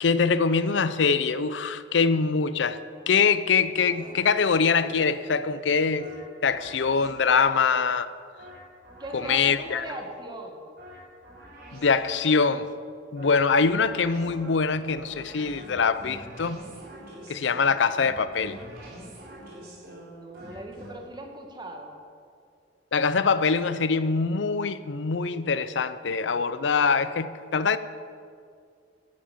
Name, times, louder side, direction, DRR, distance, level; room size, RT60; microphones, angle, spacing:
voice 1, 0.0-6.1 6.4-8.1 9.1-9.8 11.7-12.7 13.1-16.6 17.3-18.6 22.9-27.8, left 5 dB, 70° left, 0.6 m, -24 dB
sound 1, 3.8-7.7 8.4-10.1 10.8-12.5 13.2-20.9, right 1 dB, 55° right, 4.3 m, -46 dB
voice 2, 9.0-10.7 20.1-22.0, right 1 dB, 25° right, 1.7 m, -39 dB
13.0 x 8.8 x 7.2 m
head